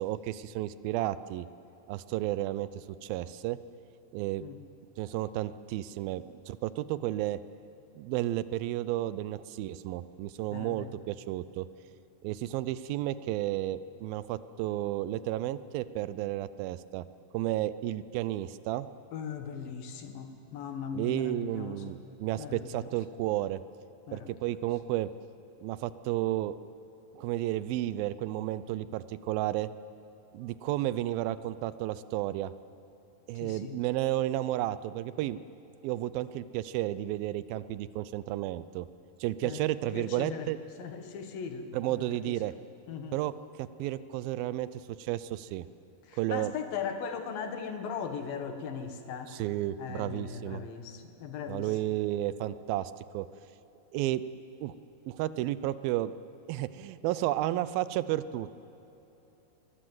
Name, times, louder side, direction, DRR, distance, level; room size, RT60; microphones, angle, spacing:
voice 1, 0.0-1.5 1.9-3.6 4.1-4.4 5.0-7.4 7.9-11.7 12.2-17.0 17.3-18.9 20.9-23.6 24.1-25.1 25.6-26.6 27.1-29.7 30.3-32.5 33.3-35.4 35.8-38.9 39.2-40.6 41.7-42.5 43.1-44.7 45.0-45.7 46.2-46.5 49.3-50.6 51.5-53.3 53.9-54.2 54.6-54.7 55.1-56.1 56.5-58.5, right 14 dB, 80° right, 15 dB, 2.4 m, -32 dB
voice 2, 10.5-10.9 19.1-22.0 22.4-23.0 24.1-24.3 33.3-33.8 39.4-39.6 39.9-40.5 40.8-42.4 42.9-43.2 46.0-49.3 49.8-51.8, left 6 dB, 75° left, 7 dB, 3.2 m, -39 dB
22.5 x 19.5 x 7.9 m, 3.0 s
omnidirectional pair, 4.2 m